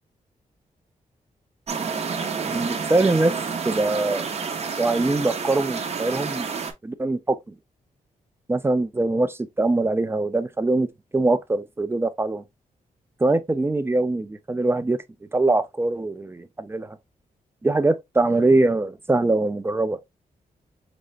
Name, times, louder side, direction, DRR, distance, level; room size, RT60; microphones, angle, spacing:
sound 1, 1.7-6.7, right 5 dB, 45° right, 0.7 m, -29 dB
voice 1, 2.5-3.3 3.7-4.3 4.8-6.5 6.8-7.4 8.5-12.4 13.2-15.0 15.3-17.0 17.6-20.0, right 2 dB, 15° right, 0.4 m, -22 dB
5.1 x 3.2 x 2.4 m
wide cardioid pair, 140°, 15 cm